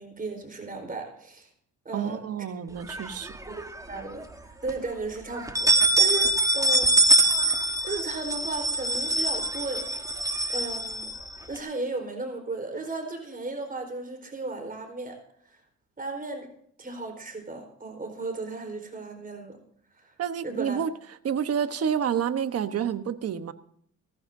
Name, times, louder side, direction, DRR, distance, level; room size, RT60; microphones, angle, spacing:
voice 1, 0.0-1.5 1.8-2.2 3.5-7.0 7.8-10.2 10.5-11.1 11.5-15.6 16.0-16.5 16.8-19.6 19.9-20.1 20.4-20.8, right 3 dB, 30° right, 5 dB, 4.4 m, -35 dB
voice 2, 1.9-3.3 20.2-20.9 21.2-23.5, right 8 dB, 55° right, 10 dB, 1.2 m, -29 dB
sound 1, 2.9-3.8 4.2-4.3 4.7-4.8 5.3-11.6, right 2 dB, 10° right, 1.4 m, -24 dB
17.5 x 14.5 x 2.7 m, 0.66 s
cardioid pair, 90°, 30 cm